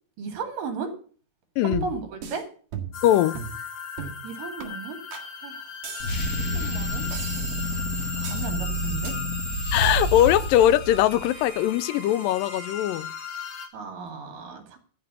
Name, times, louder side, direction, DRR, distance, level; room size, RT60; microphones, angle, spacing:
voice 1, 0.2-0.9 1.6-2.4 4.2-5.0 5.4-5.6 6.4-7.0 8.2-9.1 13.7-14.8, right 5 dB, 75° right, 3.9 m, -35 dB
sound 1, 1.7-2.4 2.7-3.1 3.3-3.6 4.0-4.2 4.6-4.7 5.1-5.3 5.8-6.5 7.1-7.8 8.2-8.5 9.0-9.2, right 6 dB, 60° right, 2.9 m, -37 dB
sound 2, 2.9-13.7, left 6 dB, 60° left, 3.0 m, -39 dB
voice 2, 3.0-3.4 9.7-13.1, left 12 dB, 85° left, 2.3 m, -21 dB
sound 3, 6.0-11.4, equal, 45° left, 1.3 m, -29 dB
13.0 x 4.9 x 8.3 m
omnidirectional pair, 3.9 m